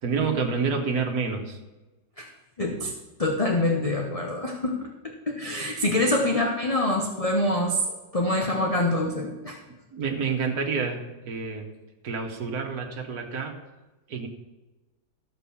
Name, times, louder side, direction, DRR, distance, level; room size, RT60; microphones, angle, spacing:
voice 1, 0.0-1.6 5.9-6.0 9.7-11.7 12.0-13.6 14.1-14.3, right 5 dB, 65° right, 3 dB, 1.8 m, -28 dB
voice 2, 2.6-2.9 3.2-7.8 8.1-9.6, left 1 dB, 25° left, 1 dB, 0.9 m, -25 dB
13.5 x 5.3 x 7.0 m, 1.1 s
omnidirectional pair, 1.7 m